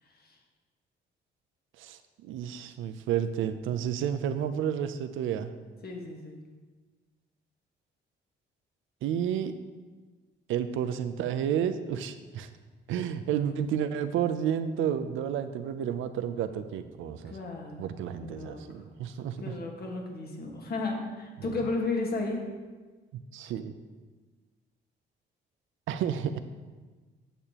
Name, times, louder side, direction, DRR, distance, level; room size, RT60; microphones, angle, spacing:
voice 1, 1.8-5.5 9.0-9.5 10.5-12.5 12.9-17.4 17.8-19.5 23.1-23.8 25.9-26.4, right 9 dB, 85° right, 10 dB, 0.5 m, -31 dB
voice 2, 5.8-6.4 17.2-17.8 18.2-18.6 19.4-22.4, left 3 dB, 50° left, 0 dB, 1.6 m, -33 dB
8.8 x 6.6 x 2.9 m, 1.4 s
cardioid pair, 90°, 20 cm